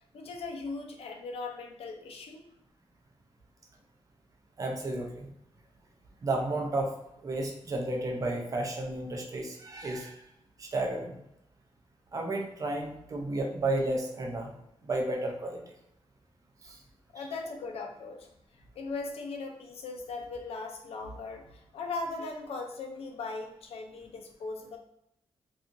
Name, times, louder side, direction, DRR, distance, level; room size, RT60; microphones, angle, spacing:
voice 1, 0.1-2.4 17.1-18.3 18.8-24.8, left 3 dB, 80° left, 3 dB, 0.4 m, -39 dB
voice 2, 4.6-5.3 6.2-6.9 7.2-10.2 10.6-11.2 12.1-14.5 14.8-15.6 16.6-16.8 17.2-17.3, right 2 dB, 35° right, 1 dB, 0.5 m, -32 dB
2.7 x 2.4 x 2.5 m, 0.81 s
wide cardioid pair, 160°, 10 cm